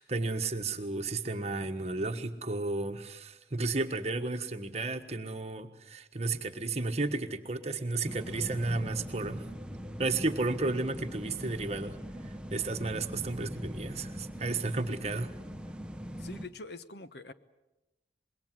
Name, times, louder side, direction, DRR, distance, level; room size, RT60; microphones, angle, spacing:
voice 1, 0.0-9.4 10.0-12.0 12.5-15.3, right 3 dB, 35° right, 7 dB, 1.4 m, -33 dB
sound 1, 8.1-16.5, equal, 5° right, 0.8 m, -41 dB
voice 2, 16.2-17.3, left 3 dB, 65° left, 11 dB, 1.1 m, -44 dB
26.5 x 21.5 x 7.6 m, 0.99 s
head